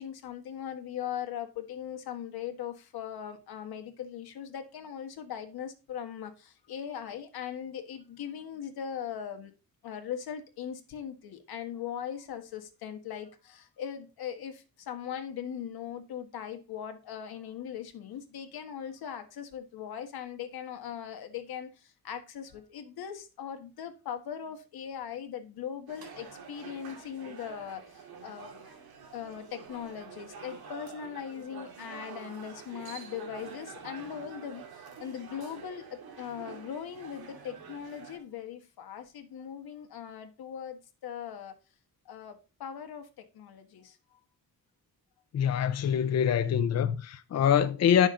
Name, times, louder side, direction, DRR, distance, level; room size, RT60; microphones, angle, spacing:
voice 1, 0.0-9.5 9.8-28.6 29.1-41.6 42.0-44.2, left 9 dB, 85° left, 1.6 m, -40 dB
sound 1, 25.9-38.2, right 6 dB, 85° right, 2.6 m, -47 dB
voice 2, 45.3-48.1, left 8 dB, 45° left, 0.6 m, -25 dB
10.5 x 6.2 x 3.8 m
wide cardioid pair, 165°, 36 cm